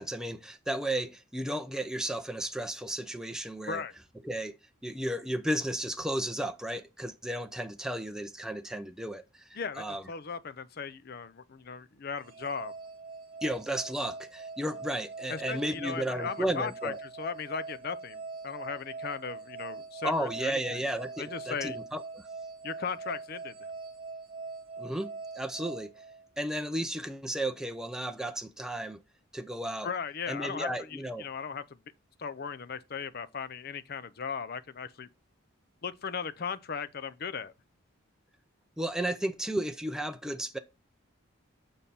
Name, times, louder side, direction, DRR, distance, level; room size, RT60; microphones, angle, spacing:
voice 1, 0.0-3.8 4.2-4.6 4.8-10.0 13.4-17.0 20.0-22.2 24.8-25.9 26.4-29.0 29.3-29.9 30.3-31.3 38.8-40.6, right 1 dB, 5° right, 0.5 m, -34 dB
voice 2, 9.6-12.7 15.3-20.8 21.2-21.8 22.6-23.5 29.8-31.6 32.2-35.1 35.8-37.5, left 5 dB, 45° left, 0.5 m, -37 dB
sound 1, 12.2-26.6, right 4 dB, 25° right, 1.9 m, -43 dB
7.2 x 5.3 x 4.2 m
head